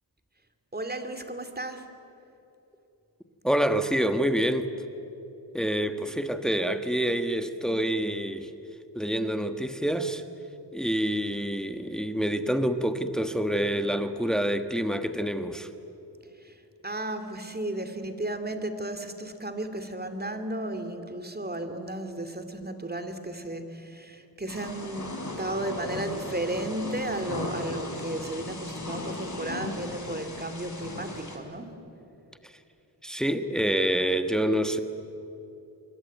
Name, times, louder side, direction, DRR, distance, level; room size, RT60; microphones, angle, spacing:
voice 1, 0.7-1.9 16.4-31.8, right 1 dB, 20° right, 8 dB, 2.5 m, -34 dB
voice 2, 3.4-4.7 5.5-8.5 8.9-10.2 10.7-15.7 32.4-32.5 33.0-34.8, right 1 dB, ahead, 8 dB, 1.5 m, -27 dB
Thunder / Rain, 24.5-31.4, left 2 dB, 40° left, 4.5 m, -37 dB
26.0 x 23.5 x 9.3 m, 2.9 s
wide cardioid pair, 80°, 43 cm